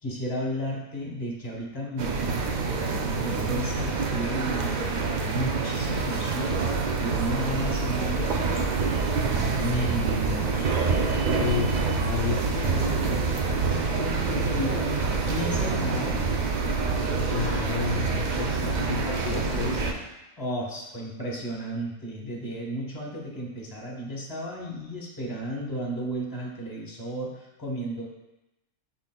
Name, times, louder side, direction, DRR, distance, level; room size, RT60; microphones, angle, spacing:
voice 1, 0.0-2.4 3.2-6.6 7.0-8.7 9.2-10.9 14.5-16.2 20.4-28.1, equal, 20° left, -3 dB, 0.8 m, -33 dB
sound 1, 2.0-19.9, right 4 dB, 70° right, 0.4 m, -26 dB
voice 2, 11.4-14.9 17.3-20.0, left 6 dB, 70° left, -1 dB, 0.8 m, -32 dB
5.9 x 3.8 x 2.2 m, 0.96 s
omnidirectional pair, 1.3 m